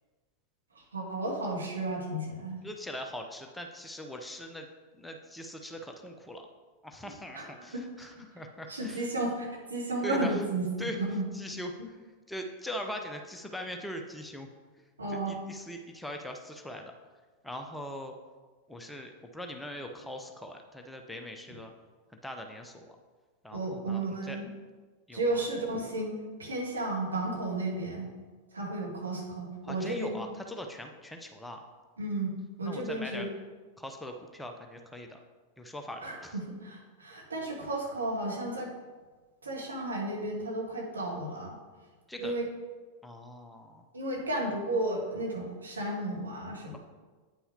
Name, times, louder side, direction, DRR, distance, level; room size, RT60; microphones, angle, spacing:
voice 1, 0.8-2.6 7.3-7.4 7.7-7.8 8.1-8.2 8.7-11.2 15.0-15.4 23.5-24.5 25.1-26.1 26.4-28.1 28.5-30.2 32.0-32.3 32.6-33.3 36.0-38.7 39.4-41.5 42.2-42.5 43.9-46.8, right 2 dB, 75° right, -2 dB, 1.6 m, -33 dB
voice 2, 2.6-4.7 4.9-6.5 6.8-9.1 10.0-10.4 10.8-11.0 11.3-12.0 12.3-14.5 15.1-16.9 17.4-18.1 18.7-21.7 22.2-23.0 23.4-24.4 25.1-25.5 29.6-31.6 32.6-33.3 33.8-35.2 35.6-36.4 42.1-42.4 43.0-43.8, equal, 5° left, 4 dB, 0.6 m, -41 dB
9.3 x 5.6 x 2.8 m, 1.3 s
figure-of-eight pair, 90°, 0 cm